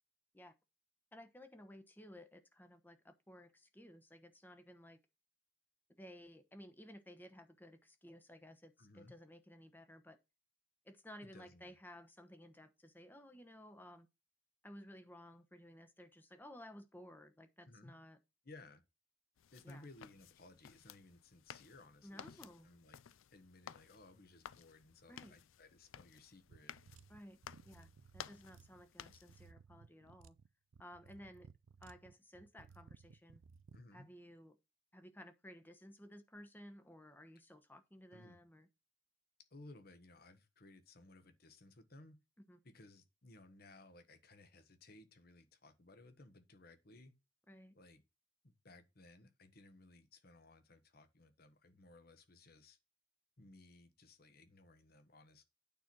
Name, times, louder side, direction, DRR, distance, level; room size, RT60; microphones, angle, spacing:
voice 1, 1.1-5.0 6.0-10.2 10.8-14.1 14.6-18.2 19.6-19.9 22.0-22.7 25.1-25.3 27.1-30.4 30.8-31.5 31.8-33.4 33.9-34.6 34.9-38.7 42.5-42.6 47.5-47.7, equal, 10° left, 1.0 m, -56 dB
voice 2, 8.8-9.2 11.2-11.8 17.7-18.0 18.4-18.8 19.5-23.0 23.3-26.8 33.7-34.1 38.1-38.4 39.5-42.2 42.6-47.1 47.7-48.0 48.4-52.8 53.4-55.4, left 2 dB, 50° left, 1.4 m, -60 dB
sound 1, 19.4-29.5, left 9 dB, 80° left, 0.4 m, -56 dB
sound 2, 26.5-33.8, right 5 dB, 80° right, 0.5 m, -61 dB
9.1 x 4.3 x 6.1 m
head